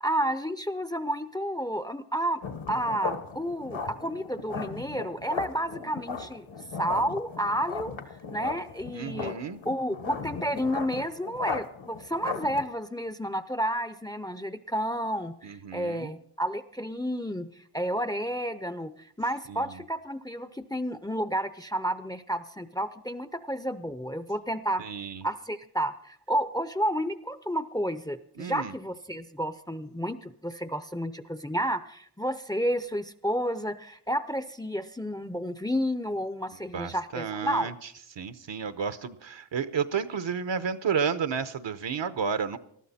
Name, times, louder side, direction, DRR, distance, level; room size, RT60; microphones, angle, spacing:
voice 1, 0.0-2.4 2.7-6.5 6.8-7.9 8.3-9.3 9.7-17.5 17.7-24.8 25.2-37.7, equal, 10° left, 12 dB, 0.6 m, -31 dB
sound 1, 2.4-12.7, left 5 dB, 65° left, 1.5 m, -37 dB
voice 2, 8.9-9.6 15.4-16.1 19.5-19.8 24.8-25.3 28.4-28.7 36.7-37.9 38.2-42.6, right 6 dB, 60° right, 12 dB, 1.0 m, -32 dB
19.5 x 13.0 x 4.3 m, 0.66 s
cardioid pair, 75°, 50 cm